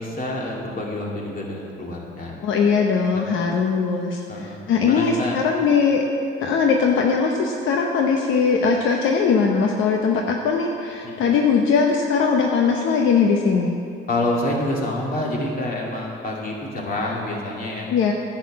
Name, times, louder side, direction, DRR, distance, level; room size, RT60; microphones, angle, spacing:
voice 1, 0.0-2.4 4.3-5.4 11.0-11.1 14.1-17.9, left 1 dB, 45° left, -2 dB, 2.5 m, -27 dB
voice 2, 2.4-6.0 6.4-13.8 17.9-18.1, left 5 dB, 80° left, 1 dB, 0.8 m, -20 dB
10.5 x 6.5 x 7.5 m, 2.5 s
cardioid pair, 90°, 20 cm